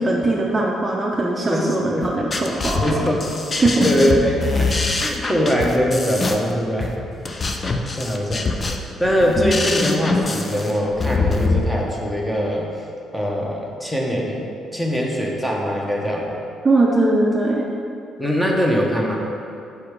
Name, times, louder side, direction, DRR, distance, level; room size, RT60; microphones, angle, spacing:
voice 1, 0.0-3.0 3.6-3.9 16.6-17.7, right 2 dB, 25° right, -2 dB, 0.6 m, -20 dB
voice 2, 1.5-2.0 2.8-3.3 3.6-6.9 7.6-8.5 9.0-12.7 13.1-14.5 14.7-16.3 18.2-19.2, equal, 5° left, -2 dB, 1.0 m, -22 dB
sound 1, 2.0-11.6, left 3 dB, 30° left, 0.5 m, -23 dB
4.9 x 4.8 x 4.7 m, 2.6 s
cardioid pair, 100°, 0 cm